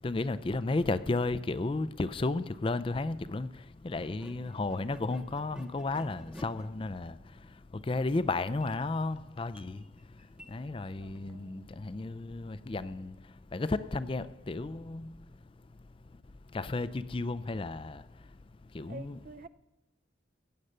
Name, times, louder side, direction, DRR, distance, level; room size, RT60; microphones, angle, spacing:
voice 1, 0.0-3.5 3.8-7.2 7.9-9.8 10.5-13.1 13.5-15.1 16.5-18.0 18.7-19.2, left 2 dB, 30° left, 0.4 m, -33 dB
sound 1, 3.0-3.1 3.9-11.4, equal, 5° right, 0.8 m, -55 dB
voice 2, 4.1-4.6 11.0-11.7 18.9-19.5, right 3 dB, 45° right, 0.5 m, -50 dB
16.0 x 8.9 x 6.7 m
head